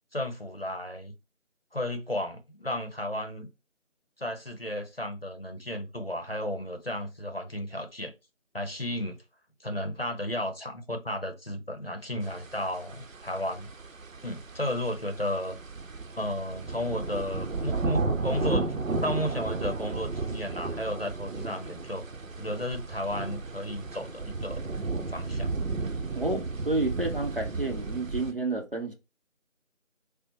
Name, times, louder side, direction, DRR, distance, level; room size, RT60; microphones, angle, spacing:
voice 1, 0.1-1.1 1.7-3.5 4.2-8.1 8.5-9.2 9.6-13.7 14.2-15.6 16.2-22.0 22.4-24.6 25.1-25.5, left 1 dB, 50° left, 0.7 m, -33 dB
sound 1, 12.2-28.3, right 3 dB, 85° right, 0.7 m, -34 dB
voice 2, 26.1-28.9, right 2 dB, 45° right, 0.9 m, -30 dB
5.8 x 2.1 x 2.9 m
figure-of-eight pair, 175°, 39 cm